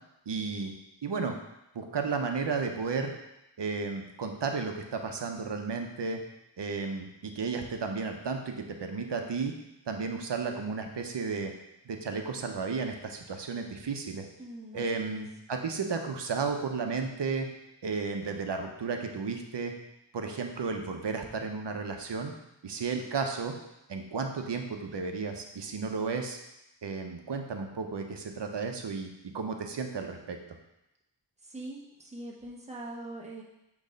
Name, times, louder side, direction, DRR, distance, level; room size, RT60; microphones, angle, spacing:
voice 1, 0.3-0.7 1.0-1.3 1.7-3.1 3.6-6.2 6.6-9.5 9.9-11.5 11.8-14.3 14.7-17.5 17.8-19.7 20.1-22.3 22.6-23.5 23.9-26.4 26.8-29.1 29.3-30.4, right 4 dB, 65° right, 4 dB, 0.8 m, -33 dB
voice 2, 14.4-15.2 31.4-33.4, right 2 dB, 15° right, -3 dB, 1.1 m, -42 dB
6.5 x 3.2 x 5.1 m, 0.89 s
wide cardioid pair, 75°, 45 cm